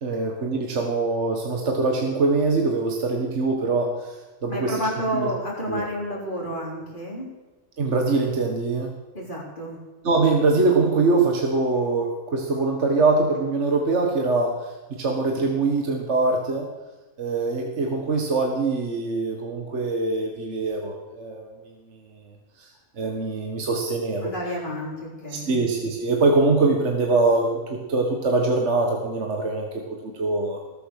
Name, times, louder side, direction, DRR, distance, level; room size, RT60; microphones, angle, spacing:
voice 1, 0.0-4.8 5.1-5.3 5.7-5.8 7.8-8.9 10.0-16.7 17.2-21.5 21.9-22.0 22.3-22.7 23.0-24.3 25.3-29.7 30.0-30.6, right 3 dB, 50° right, 2 dB, 1.7 m, -23 dB
voice 2, 4.5-7.3 9.1-9.8 24.2-25.6, equal, 35° left, -3 dB, 4.0 m, -30 dB
18.5 x 7.7 x 6.5 m, 1.2 s
omnidirectional pair, 1.5 m